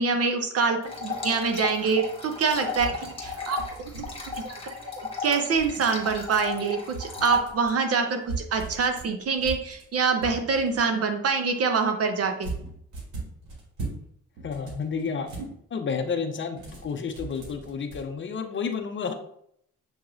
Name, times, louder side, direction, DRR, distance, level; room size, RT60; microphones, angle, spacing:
voice 1, 0.0-4.9 5.2-12.5, right 5 dB, 50° right, 6 dB, 0.8 m, -25 dB
sound 1, 0.8-7.4, left 4 dB, 20° left, 1.3 m, -36 dB
sound 2, 2.4-4.7 5.5-6.5 6.9-7.8 8.2-10.9 12.4-14.0 14.3-15.5 16.5-18.0, right 3 dB, 80° right, 1.8 m, -39 dB
voice 2, 14.4-15.3 15.7-19.1, left 5 dB, 40° left, 6 dB, 0.6 m, -30 dB
7.1 x 2.9 x 2.5 m, 0.70 s
cardioid pair, 90°, 30 cm